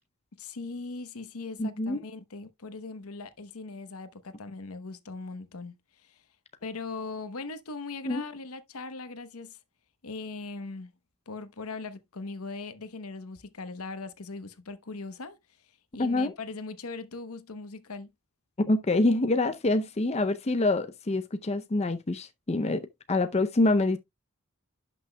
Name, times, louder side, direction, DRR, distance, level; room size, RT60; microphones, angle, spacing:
voice 1, 0.4-5.7 6.0-6.2 6.6-9.6 10.0-10.9 11.3-15.4 15.9-18.1, left 3 dB, 75° left, 1.0 m, -39 dB
voice 2, 1.6-2.0 8.1-8.3 16.0-16.3 18.6-22.8 23.1-24.0, left 2 dB, 30° left, 0.5 m, -26 dB
11.5 x 6.1 x 2.2 m
head